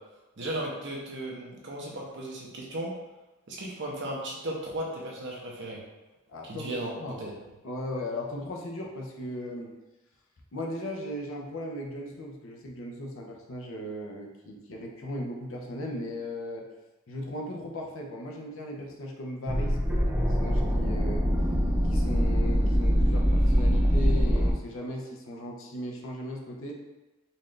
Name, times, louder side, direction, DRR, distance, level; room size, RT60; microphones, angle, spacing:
voice 1, 0.4-2.9 3.5-5.8 6.4-7.3, right 1 dB, 55° right, -3 dB, 0.8 m, -35 dB
voice 2, 6.3-7.2 7.6-9.7 10.5-16.6 17.1-21.3 21.8-26.7, left 1 dB, 65° left, 0 dB, 0.7 m, -37 dB
sound 1, 19.5-24.5, equal, 5° right, 0.4 m, -23 dB
4.1 x 2.5 x 3.2 m, 1.1 s
head